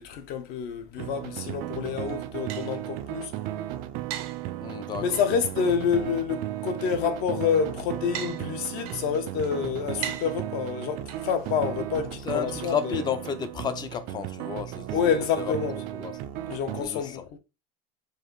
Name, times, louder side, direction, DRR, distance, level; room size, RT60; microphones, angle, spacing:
voice 1, 0.0-3.3 5.0-13.0 14.9-15.8 16.5-17.2, left 7 dB, 55° left, 0.8 m, -28 dB
sound 1, 1.0-16.8, right 14 dB, 50° right, 0.4 m, -35 dB
sound 2, 1.9-13.5, right 11 dB, 80° right, 0.8 m, -44 dB
voice 2, 4.6-5.2 12.2-15.5 15.9-16.1 16.8-17.2, left 7 dB, 25° left, 0.4 m, -32 dB
4.6 x 2.6 x 3.1 m
cardioid pair, 145°, 19 cm